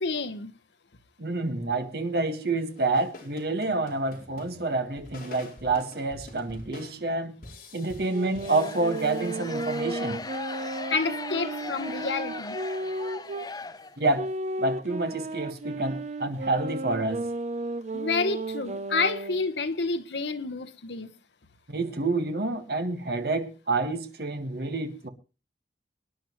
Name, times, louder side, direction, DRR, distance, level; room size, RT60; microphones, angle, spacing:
voice 1, 0.0-0.5 10.9-12.6 17.9-21.1, left 4 dB, 80° left, 1.1 m, -29 dB
voice 2, 1.2-7.4 7.7-10.2 14.0-14.3 14.6-17.3 21.7-25.1, right 3 dB, 60° right, 1.7 m, -28 dB
sound 1, 2.6-10.0, left 1 dB, 50° left, 4.2 m, -48 dB
sound 2, 8.0-13.5 14.1-19.5, right 2 dB, 40° right, 0.6 m, -34 dB
sound 3, 8.4-14.3, left 3 dB, 20° left, 0.7 m, -39 dB
23.5 x 10.5 x 3.1 m
head